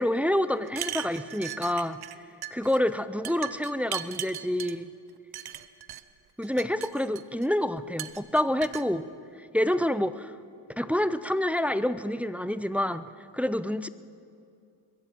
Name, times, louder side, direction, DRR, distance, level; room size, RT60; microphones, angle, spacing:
voice 1, 0.0-2.0 2.5-4.9 6.4-9.0 9.4-10.3 10.8-13.1 13.3-13.9, left 1 dB, 5° right, 13 dB, 0.4 m, -27 dB
sound 1, 0.7-2.2 2.4-2.8 3.2-4.8 5.3-6.0 6.4-7.5 8.0-8.9, right 11 dB, 60° right, 0.7 m, -37 dB
22.0 x 8.1 x 7.5 m, 2.4 s
cardioid pair, 60°, 43 cm